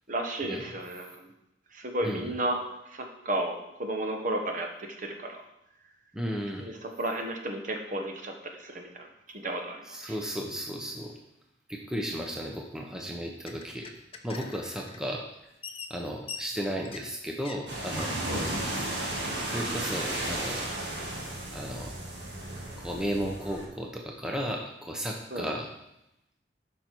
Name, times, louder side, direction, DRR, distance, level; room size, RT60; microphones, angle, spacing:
voice 1, 0.1-1.3 1.7-5.4 6.6-9.1 9.4-10.2 18.3-18.5 25.3-25.5, right 1 dB, 40° right, 3 dB, 1.1 m, -33 dB
voice 2, 6.1-6.6 9.8-11.2 11.7-13.9 14.2-15.2 15.9-18.2 18.9-19.0 19.4-20.7 21.5-21.9 22.8-25.7, equal, 5° right, 0 dB, 0.8 m, -34 dB
sound 1, 13.2-15.1 15.4-17.1 17.4-17.6 18.0-18.2 18.5-18.6, left 5 dB, 30° left, 0.7 m, -44 dB
sound 2, 17.7-23.7, right 1 dB, 65° right, 2.1 m, -34 dB
12.0 x 5.5 x 4.5 m, 0.85 s
head